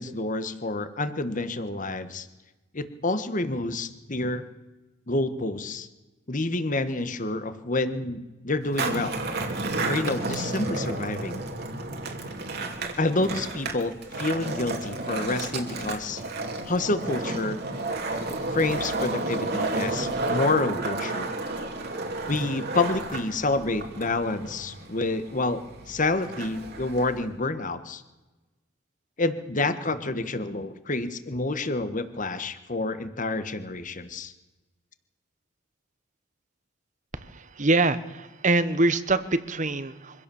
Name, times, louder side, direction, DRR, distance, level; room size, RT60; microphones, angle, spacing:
voice 1, 0.0-2.3 2.7-4.4 5.1-5.9 6.3-9.2 9.9-11.5 13.0-16.2 16.7-17.6 18.5-21.3 22.3-28.0 29.2-34.3, left 2 dB, 45° left, 11 dB, 1.5 m, -28 dB
Skateboard, 8.6-27.3, right 2 dB, 55° right, 2.6 m, -32 dB
voice 2, 37.6-40.2, right 2 dB, 40° right, 13 dB, 1.1 m, -24 dB
24.5 x 16.5 x 7.2 m, 1.1 s
head